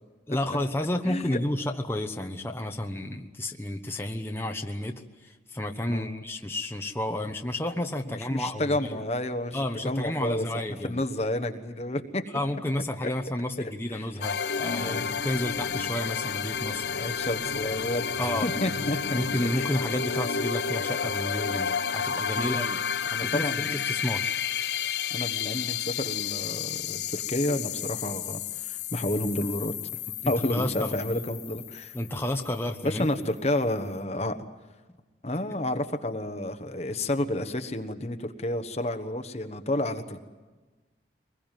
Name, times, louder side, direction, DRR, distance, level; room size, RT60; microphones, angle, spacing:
voice 1, 0.3-9.0 9.5-11.0 12.3-17.1 18.2-18.5 19.1-24.3 30.2-30.9 31.9-33.1, left 1 dB, 15° left, 3 dB, 1.1 m, -31 dB
voice 2, 1.1-1.4 5.9-6.2 8.0-9.6 9.8-10.4 10.8-12.2 13.0-13.1 13.6-14.1 14.8-15.1 17.0-18.1 18.4-19.2 19.5-19.7 22.4-22.8 23.1-23.7 25.1-29.7 30.3-31.9 32.8-34.3 35.2-40.2, left 1 dB, 35° left, 8 dB, 1.2 m, -30 dB
sound 1, 14.2-32.7, left 7 dB, 70° left, 0.8 m, -31 dB
24.5 x 21.0 x 9.2 m, 1.3 s
head